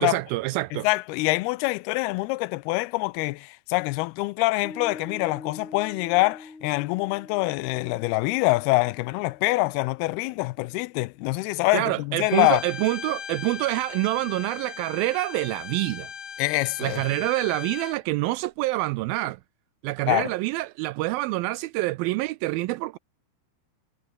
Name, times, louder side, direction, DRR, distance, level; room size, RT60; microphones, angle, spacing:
voice 1, 0.0-0.9 11.7-16.1 16.8-19.4 19.8-23.0, right 19 dB, 80° right, 2.2 m, -26 dB
voice 2, 0.7-12.6 16.4-17.0 20.1-20.3, left 21 dB, 85° left, 2.5 m, -25 dB
Piano, 4.6-11.4, left 3 dB, 30° left, 6.3 m, -46 dB
Bowed string instrument, 12.2-18.0, left 7 dB, 65° left, 1.0 m, -39 dB
omnidirectional pair, 4.5 m